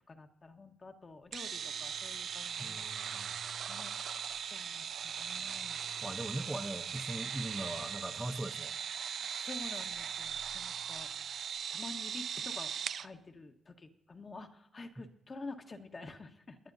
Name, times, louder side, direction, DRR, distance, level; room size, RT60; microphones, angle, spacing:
voice 1, 0.1-2.8 3.7-3.9 4.5-5.8 9.2-11.1 11.4-12.7 13.0-16.6, left 3 dB, 35° left, 5 dB, 1.1 m, -49 dB
sound 1, 1.3-13.1, right 8 dB, 60° right, 0.3 m, -39 dB
voice 2, 2.6-3.3 6.0-8.7, right 1 dB, 10° right, 5 dB, 0.7 m, -40 dB
20.0 x 10.5 x 2.7 m, 0.81 s
cardioid pair, 95°, 0 cm